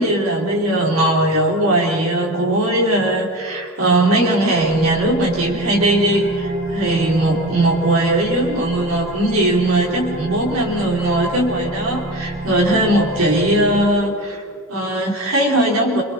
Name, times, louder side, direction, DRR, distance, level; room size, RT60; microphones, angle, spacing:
voice 1, 0.0-14.4 14.7-16.0, right 1 dB, 70° right, -2 dB, 3.4 m, -19 dB
sound 1, 4.6-13.9, right 3 dB, 50° right, 4.5 m, -29 dB
28.5 x 24.0 x 4.3 m, 2.1 s
head